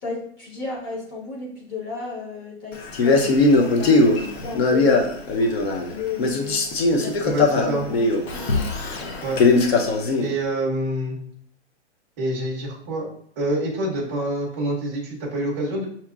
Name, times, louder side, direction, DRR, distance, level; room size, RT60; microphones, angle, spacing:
voice 1, 0.0-3.3 3.6-5.2 5.8-6.6 6.9-8.4 9.4-9.9, left 4 dB, 20° left, -4 dB, 1.0 m, -33 dB
Male speech man speaking, 2.9-5.9 6.2-10.3, left 3 dB, 65° left, 0.8 m, -20 dB
voice 2, 7.2-7.8 9.2-9.4 10.2-11.2 12.2-13.1 13.4-15.9, right 1 dB, 10° right, -4 dB, 0.6 m, -26 dB
5.8 x 2.8 x 2.4 m, 0.64 s
hypercardioid pair, 175°, 34 cm